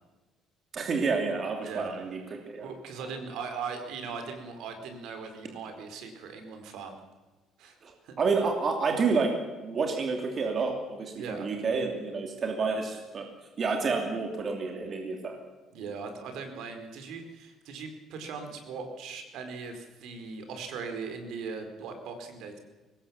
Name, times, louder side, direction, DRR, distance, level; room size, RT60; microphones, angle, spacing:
voice 1, 0.7-2.7 7.8-7.9 8.2-9.3 9.6-13.3 13.6-15.4, right 4 dB, 30° right, 3 dB, 2.9 m, -29 dB
voice 2, 2.6-6.9 7.6-7.8 8.0-8.1 11.1-11.5 15.7-22.6, right 5 dB, 65° right, 6 dB, 4.4 m, -39 dB
24.0 x 20.0 x 7.3 m, 1.2 s
cardioid pair, 180°, 0 cm